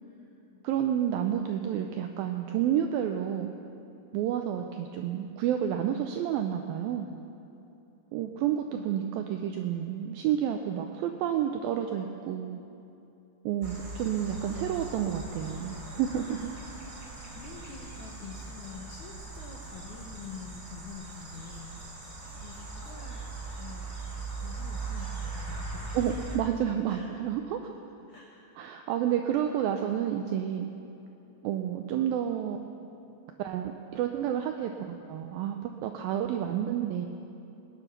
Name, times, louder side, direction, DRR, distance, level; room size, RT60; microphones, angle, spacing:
voice 1, 0.0-0.7 8.0-8.2 8.7-8.9 17.3-22.0 22.3-23.3 23.6-25.9 26.9-27.1 28.1-28.4, left 6 dB, 75° left, -1 dB, 1.8 m, -47 dB
voice 2, 0.6-3.5 4.1-7.1 8.1-12.6 13.5-16.5 25.9-27.6 28.6-30.7 31.4-32.6 33.4-37.1, right 10 dB, 85° right, 5 dB, 2.1 m, -30 dB
sound 1, 13.6-26.4, right 3 dB, 20° right, 1.9 m, -40 dB
19.0 x 9.9 x 6.0 m, 2.9 s
omnidirectional pair, 4.8 m